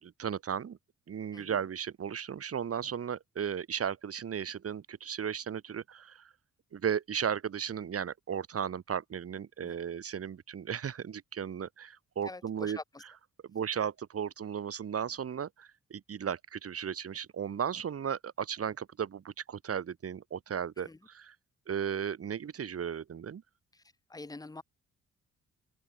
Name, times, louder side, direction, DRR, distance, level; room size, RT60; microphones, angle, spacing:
voice 1, 0.0-0.8 1.1-6.3 6.7-12.8 13.5-21.3 21.7-23.4, right 8 dB, 50° right, 1.6 m, -35 dB
voice 2, 12.2-13.0 20.8-21.0 23.7-23.8 24.1-24.6, left 2 dB, 15° left, 0.7 m, -45 dB
open air
cardioid pair, 70°, 30 cm